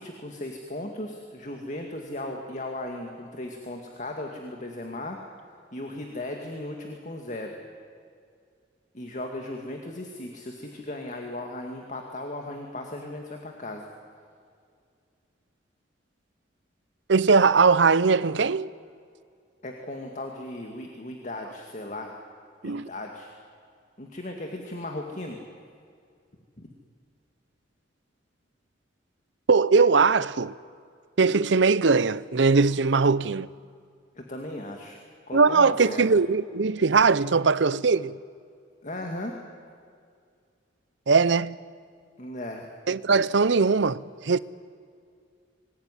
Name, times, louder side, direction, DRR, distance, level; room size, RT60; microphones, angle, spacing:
voice 1, 0.0-5.2 5.7-7.5 8.9-13.9 19.6-22.2 22.6-23.3 24.0-25.4 26.6-26.7 34.2-35.0 35.3-36.1 38.8-39.3 42.2-42.7, left 1 dB, 40° left, 2.2 m, -36 dB
voice 2, 17.1-18.7 22.6-22.9 29.5-30.5 31.2-33.5 35.3-38.2 41.1-41.6 42.9-44.4, right 4 dB, 70° right, 0.7 m, -20 dB
25.0 x 20.5 x 9.9 m
head